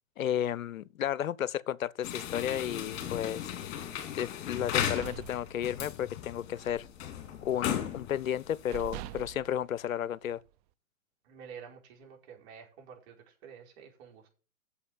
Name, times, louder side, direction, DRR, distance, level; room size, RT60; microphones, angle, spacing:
voice 1, 0.2-3.5 4.1-6.9 7.4-10.4, left 10 dB, 75° left, 0.6 m, -33 dB
sound 1, 2.0-9.2, left 10 dB, 45° left, 2.9 m, -36 dB
sound 2, 4.6-6.2 6.5-6.8 7.1-7.9 8.3-8.4 8.7-10.5, right 14 dB, 30° right, 0.5 m, -45 dB
voice 2, 11.2-14.3, right 7 dB, 50° right, 4.8 m, -50 dB
8.5 x 7.3 x 7.4 m
figure-of-eight pair, 110°, 42 cm